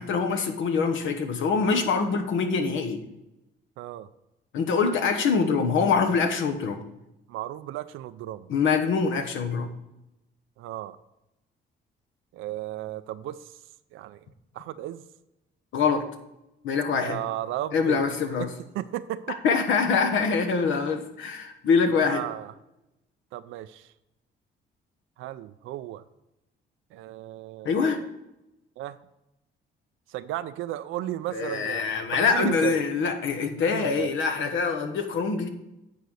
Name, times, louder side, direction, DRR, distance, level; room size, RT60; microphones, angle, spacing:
voice 1, 0.0-3.0 4.5-6.8 8.5-9.7 15.7-16.0 16.6-17.2 17.7-18.5 19.4-22.2 27.6-28.0 31.3-35.5, left 5 dB, 75° left, 7 dB, 1.1 m, -24 dB
voice 2, 3.8-4.1 7.3-8.5 10.6-11.0 12.3-13.6 13.9-14.3 14.5-15.1 16.9-18.5 18.7-19.4 22.0-22.5 23.3-23.9 25.2-26.0 26.9-28.1 28.8-29.0 30.1-32.8 33.7-34.1, right 13 dB, 90° right, 11 dB, 0.4 m, -35 dB
9.4 x 4.1 x 6.3 m, 0.92 s
cardioid pair, 90°, 20 cm